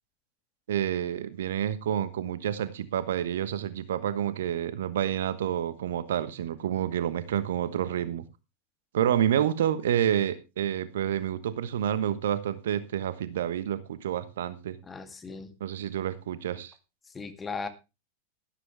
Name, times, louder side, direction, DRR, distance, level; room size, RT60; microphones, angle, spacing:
voice 1, 0.7-8.2 8.9-14.8 15.6-16.7, right 10 dB, 60° right, 14 dB, 1.2 m, -29 dB
voice 2, 14.8-15.5 17.1-17.7, left 4 dB, 15° left, 9 dB, 2.1 m, -37 dB
13.0 x 13.0 x 3.4 m, 0.28 s
figure-of-eight pair, 90°, 0 cm